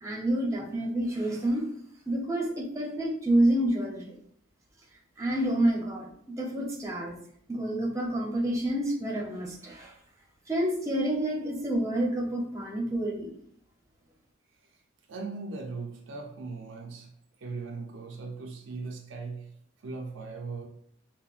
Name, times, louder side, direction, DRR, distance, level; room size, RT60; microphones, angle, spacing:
voice 1, 0.0-1.7 2.1-4.1 5.2-7.2 7.5-9.9 10.5-13.3, right 1 dB, 15° right, -1 dB, 0.7 m, -28 dB
voice 2, 15.1-17.1 17.4-19.5 19.8-20.7, right 4 dB, 70° right, 2 dB, 0.5 m, -38 dB
5.6 x 2.1 x 2.4 m, 0.66 s
head